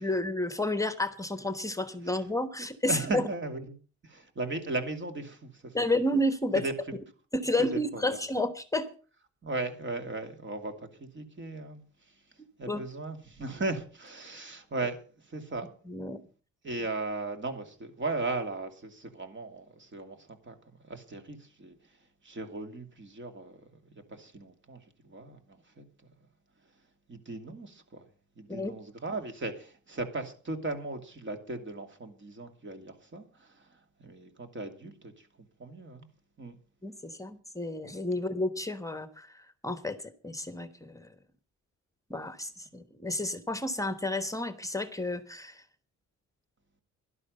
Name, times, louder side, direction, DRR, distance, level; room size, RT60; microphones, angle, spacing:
voice 1, 0.0-3.2 5.7-6.6 7.3-8.9 12.7-12.8 15.9-16.2 28.5-28.7 36.8-41.1 42.1-45.6, left 1 dB, 10° left, 1.2 m, -31 dB
voice 2, 2.6-3.8 4.0-5.8 6.6-6.7 7.7-8.2 9.4-12.1 12.6-15.7 16.6-20.6 20.8-21.8 22.2-25.8 27.1-28.1 28.4-35.3 35.6-36.1 36.4-36.6, right 2 dB, 40° right, 2.6 m, -37 dB
12.5 x 11.5 x 5.5 m
cardioid pair, 90°, 30 cm